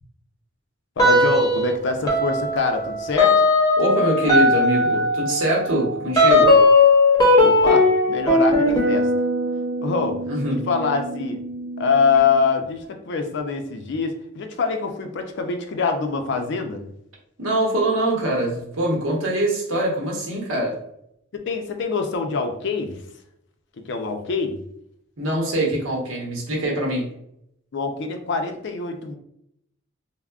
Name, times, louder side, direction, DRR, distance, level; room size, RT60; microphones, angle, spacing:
voice 1, 1.0-3.4 7.4-9.1 9.8-10.2 10.7-11.4 11.8-16.8 21.3-23.0 23.9-24.6 27.7-29.2, left 5 dB, 60° left, 5 dB, 0.4 m, -24 dB
sound 1, 1.0-1.7 2.1-12.4, left 2 dB, 20° left, 0.7 m, -19 dB
voice 2, 3.8-6.6 10.3-10.6 17.4-20.7 25.2-27.1, right 1 dB, 85° right, -2 dB, 0.9 m, -23 dB
3.4 x 2.1 x 2.3 m, 0.74 s
head